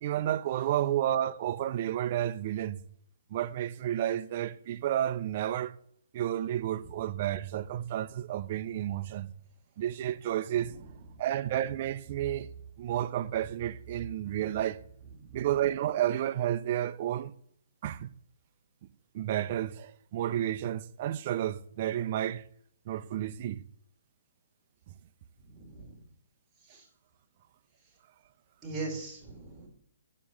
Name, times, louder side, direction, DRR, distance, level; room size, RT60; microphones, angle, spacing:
voice 1, 0.0-2.8 3.3-5.7 6.1-9.3 9.8-10.7 11.2-12.5 12.8-14.8 15.3-17.3 17.8-18.1 19.1-22.4 22.9-23.6, right 11 dB, 40° right, 0.6 m, -31 dB
voice 2, 25.5-26.0 26.7-26.8 28.6-29.7, right 3 dB, 10° right, 3.1 m, -40 dB
7.5 x 7.4 x 7.2 m
hypercardioid pair, 155°, 0 cm